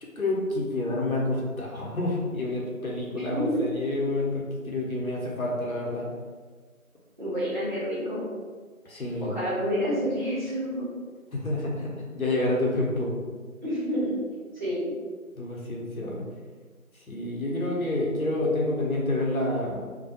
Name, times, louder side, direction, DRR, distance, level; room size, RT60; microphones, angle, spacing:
voice 1, 0.0-6.1 8.8-9.3 11.3-13.1 15.4-16.2 16.9-19.8, left 2 dB, 75° left, -3 dB, 0.9 m, -28 dB
voice 2, 3.1-3.6 7.2-8.3 9.2-10.9 13.6-14.2 14.5-14.9, equal, 35° right, -12 dB, 1.1 m, -29 dB
2.6 x 2.2 x 2.6 m, 1.5 s
figure-of-eight pair, 175°, 43 cm